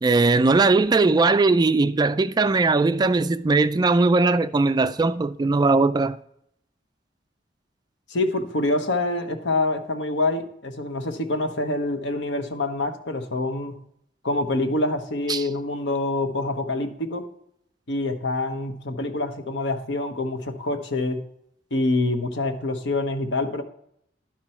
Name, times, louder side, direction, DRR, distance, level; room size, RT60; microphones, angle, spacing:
voice 1, 0.0-6.2 15.3-15.4, right 3 dB, 20° right, 0.3 m, -19 dB
voice 2, 8.1-13.8 14.2-17.3 17.9-21.2 21.7-23.6, left 2 dB, 75° left, 1.1 m, -26 dB
11.5 x 6.1 x 4.3 m
head